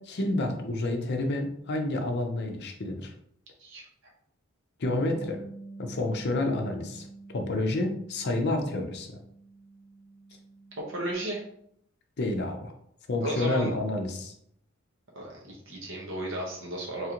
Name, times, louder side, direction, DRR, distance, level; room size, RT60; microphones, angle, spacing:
voice 1, 0.1-3.1 4.8-5.4 5.8-9.2 12.2-12.7 13.1-14.3, left 2 dB, 50° left, 4 dB, 0.6 m, -29 dB
Bass guitar, 4.9-11.2, right 3 dB, 10° right, 1.1 m, -47 dB
voice 2, 10.8-11.4 13.2-13.7 15.1-17.1, right 1 dB, 60° right, -2 dB, 1.1 m, -34 dB
3.7 x 3.3 x 2.9 m, 0.70 s
head